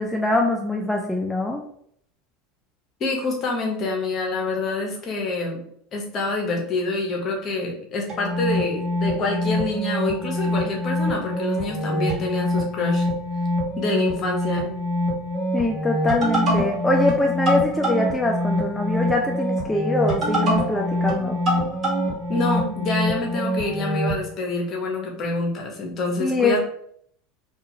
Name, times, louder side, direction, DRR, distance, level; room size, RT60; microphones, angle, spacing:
voice 1, 0.0-1.6 15.5-21.4 26.2-26.6, left 2 dB, 5° left, 0 dB, 0.4 m, -23 dB
voice 2, 3.0-5.6 5.9-13.1 13.8-14.8 22.3-26.6, left 2 dB, 40° left, 1 dB, 0.9 m, -26 dB
sound 1, 8.1-24.2, equal, 35° right, 1.3 m, -25 dB
2.4 x 2.3 x 2.9 m, 0.66 s
hypercardioid pair, 100°, 0 cm